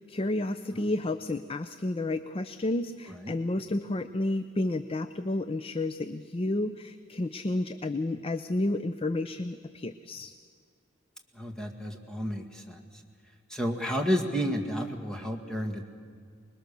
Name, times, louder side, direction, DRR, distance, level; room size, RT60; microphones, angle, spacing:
voice 1, 0.0-10.3, left 2 dB, 30° left, 11 dB, 0.5 m, -31 dB
voice 2, 11.3-12.8 13.5-15.9, equal, 5° left, 2 dB, 2.0 m, -31 dB
25.5 x 21.0 x 6.8 m, 2.1 s
head